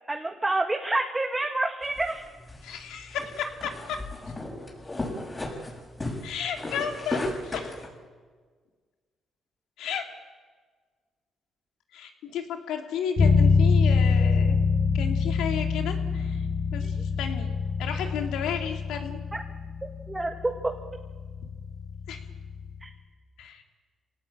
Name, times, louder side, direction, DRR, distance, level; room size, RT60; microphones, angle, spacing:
voice 1, 0.1-2.2 16.8-16.9 19.3-19.4 20.1-20.7 22.8-22.9, right 2 dB, 15° right, 3 dB, 1.7 m, -28 dB
sound 1, 1.8-7.9, left 1 dB, 20° left, 7.1 m, -35 dB
voice 2, 2.6-4.0 6.2-7.8 9.8-10.1 11.9-14.6 14.9-16.4 16.7-17.5 17.8-19.2 22.1-22.2 23.4-23.6, left 8 dB, 90° left, 3 dB, 2.9 m, -33 dB
Bass guitar, 13.2-22.9, left 4 dB, 50° left, 7.4 m, -25 dB
26.0 x 18.0 x 8.8 m, 1.5 s
cardioid pair, 90°, 0 cm